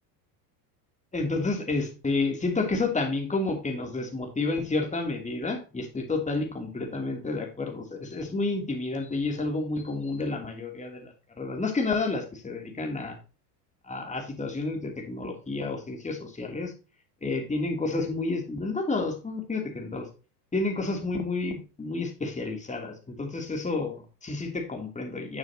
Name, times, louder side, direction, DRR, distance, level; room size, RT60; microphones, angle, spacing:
voice 1, 1.1-13.2 13.8-16.7 17.2-20.1 20.5-25.4, left 3 dB, 15° left, 2 dB, 3.0 m, -30 dB
8.8 x 7.3 x 2.9 m, 0.34 s
hypercardioid pair, 90°, 50 cm